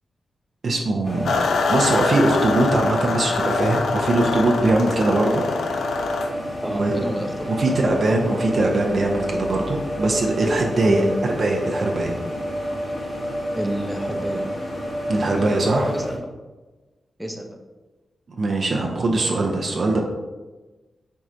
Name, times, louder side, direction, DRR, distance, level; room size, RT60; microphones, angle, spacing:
voice 1, 0.6-1.3 1.7-5.4 6.7-7.1 7.6-12.1 15.1-15.9 18.4-20.0, right 2 dB, 55° right, 1 dB, 0.6 m, -21 dB
sound 1, 1.0-16.2, equal, 35° left, 1.2 m, -29 dB
sound 2, 1.2-6.3, left 4 dB, 90° left, 0.3 m, -25 dB
voice 2, 6.6-8.0 10.8-11.1 13.5-14.6 15.3-16.3 17.2-17.6, right 1 dB, 5° right, 3 dB, 0.5 m, -30 dB
4.6 x 4.2 x 2.5 m, 1.2 s
wide cardioid pair, 100°, 0 cm